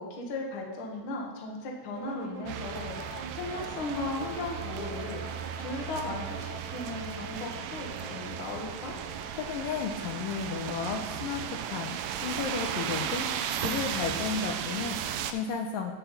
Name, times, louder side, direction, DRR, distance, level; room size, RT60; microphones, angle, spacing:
voice 1, 0.0-9.0, left 2 dB, 50° left, 0 dB, 1.6 m, -37 dB
sound 1, 1.9-11.3, equal, 45° right, 2.2 m, -45 dB
sound 2, 2.5-15.3, right 9 dB, 80° right, 2.3 m, -35 dB
voice 2, 9.4-15.9, left 6 dB, 75° left, 2 dB, 2.3 m, -34 dB
16.5 x 6.2 x 4.1 m, 1.2 s
omnidirectional pair, 4.3 m